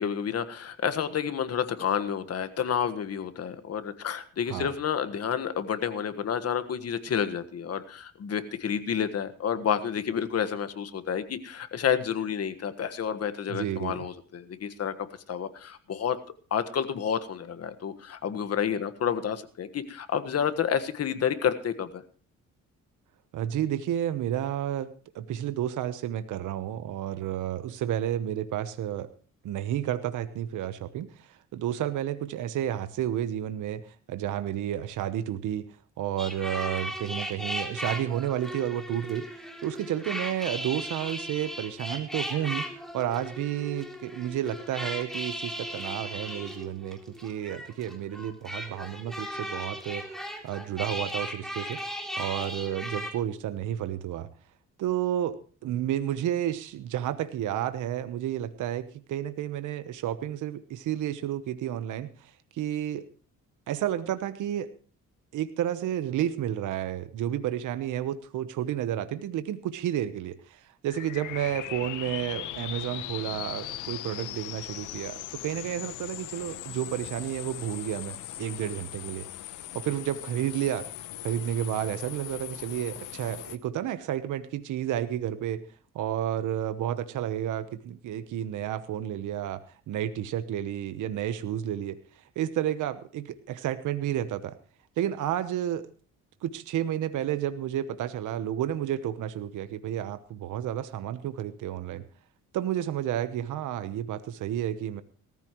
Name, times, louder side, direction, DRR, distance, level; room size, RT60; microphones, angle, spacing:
voice 1, 0.0-14.9 15.3-16.2 16.5-22.0, left 8 dB, 55° left, 10 dB, 1.5 m, -30 dB
voice 2, 13.5-14.0 23.3-29.1 29.4-35.7 36.0-42.7 42.9-50.0 50.4-51.8 52.2-54.3 54.8-63.1 63.7-64.7 65.3-79.3 79.7-80.9 81.2-85.6 85.9-92.0 92.4-94.6 95.0-95.9 96.4-102.0 102.5-105.0, right 11 dB, 80° right, 11 dB, 1.1 m, -31 dB
sound 1, 36.2-53.1, equal, ahead, 3.4 m, -37 dB
sound 2, 70.9-83.6, left 14 dB, 90° left, 0.9 m, -39 dB
18.5 x 14.0 x 3.1 m, 0.40 s
cardioid pair, 90°, 30 cm